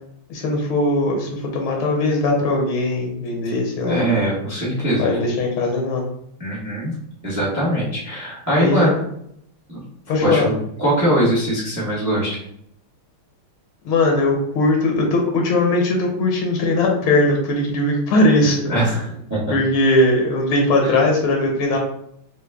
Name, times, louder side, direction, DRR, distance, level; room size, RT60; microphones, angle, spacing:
voice 1, 0.3-4.1 5.0-6.0 8.5-8.9 10.1-10.5 13.8-18.9 19.5-21.8, left 2 dB, 70° left, 1 dB, 1.6 m, -19 dB
voice 2, 3.8-5.1 6.4-6.9 7.2-8.9 9.7-9.8 10.2-12.4 18.7-19.5 20.8-20.9, right 1 dB, 15° right, -6 dB, 0.6 m, -21 dB
3.9 x 2.2 x 3.4 m, 0.72 s
omnidirectional pair, 2.4 m